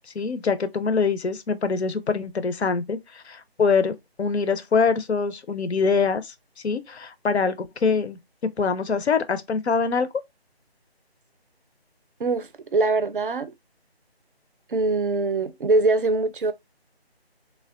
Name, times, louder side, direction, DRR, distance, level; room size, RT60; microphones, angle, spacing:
voice 1, 0.1-6.3 6.6-10.1, left 5 dB, 90° left, 0.6 m, -24 dB
voice 2, 12.2-13.5 14.7-16.5, right 3 dB, 55° right, 0.4 m, -23 dB
3.3 x 2.2 x 2.3 m
figure-of-eight pair, 165°, 32 cm